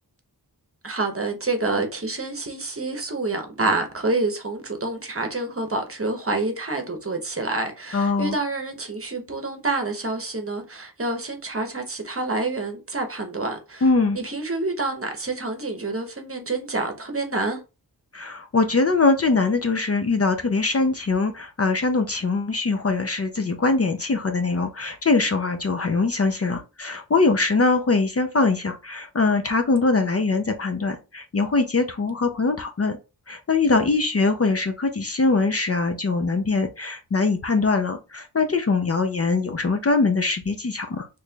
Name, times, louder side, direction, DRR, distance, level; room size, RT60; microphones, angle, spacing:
voice 1, 0.8-13.8 14.1-17.6, right 2 dB, 35° right, 0.8 m, -27 dB
voice 2, 7.9-8.4 13.8-14.2 18.1-33.0 33.3-41.1, left 3 dB, 40° left, 0.5 m, -22 dB
4.1 x 3.1 x 2.2 m
wide cardioid pair, 70°, 40 cm